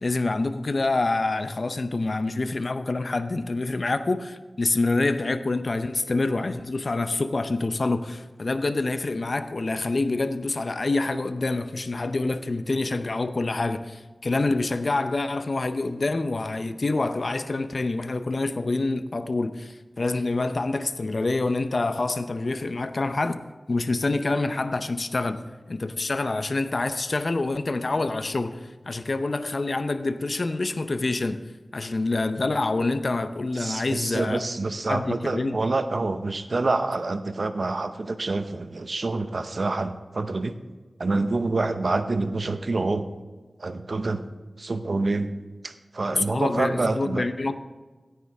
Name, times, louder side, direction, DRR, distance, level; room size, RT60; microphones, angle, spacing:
voice 1, 0.0-25.4 25.7-31.4 31.7-34.5 34.9-35.6 46.1-47.6, left 2 dB, 60° left, 0.7 m, -26 dB
voice 2, 33.6-40.5 41.0-43.1 43.6-44.2 44.6-45.3 45.6-47.2, right 3 dB, 65° right, 0.7 m, -27 dB
16.0 x 9.4 x 3.5 m
cardioid pair, 45°, 0 cm